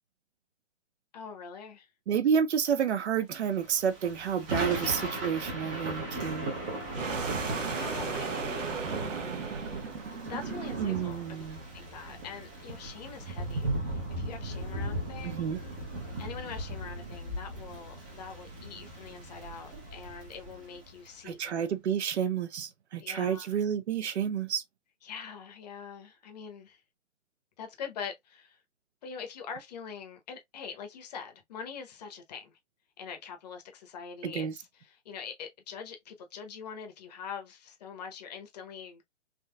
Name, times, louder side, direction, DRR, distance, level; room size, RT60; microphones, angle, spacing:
voice 1, 1.1-1.9 7.3-8.8 10.2-11.4 11.7-15.4 16.2-21.5 23.0-23.6 25.0-26.8 27.6-28.6 29.0-32.6 33.0-39.0, left 6 dB, 35° left, 0.8 m, -44 dB
voice 2, 2.1-6.5 10.8-11.6 15.2-15.6 21.2-24.6 34.2-34.5, right 8 dB, 60° right, 0.7 m, -30 dB
Thunder / Rain, 3.6-21.1, right 1 dB, 15° right, 0.5 m, -37 dB
sound 1, 6.9-11.2, right 5 dB, 80° right, 1.1 m, -35 dB
3.6 x 2.7 x 2.2 m
hypercardioid pair, 145°, 37 cm